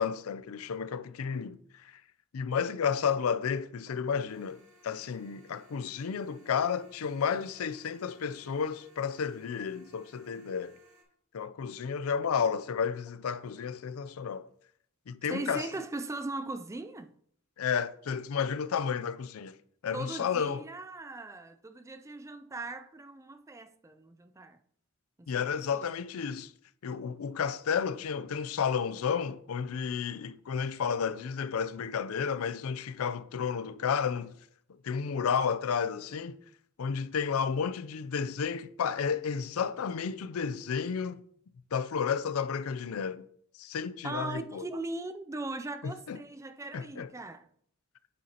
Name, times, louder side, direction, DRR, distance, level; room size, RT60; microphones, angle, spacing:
voice 1, 0.0-1.9 2.3-10.8 11.3-14.5 15.1-15.7 17.6-19.6 19.8-20.6 25.3-26.5 26.8-34.3 34.7-36.4 36.8-41.2 41.7-43.2 43.6-44.6 45.8-46.2 46.7-47.1, left 6 dB, 90° left, 0.4 m, -32 dB
sound 1, 4.3-11.0, equal, 70° right, 2.4 m, -62 dB
voice 2, 15.3-17.1 19.9-24.6 25.2-26.0 44.0-47.5, right 2 dB, 15° right, 0.3 m, -39 dB
9.3 x 6.5 x 2.8 m
head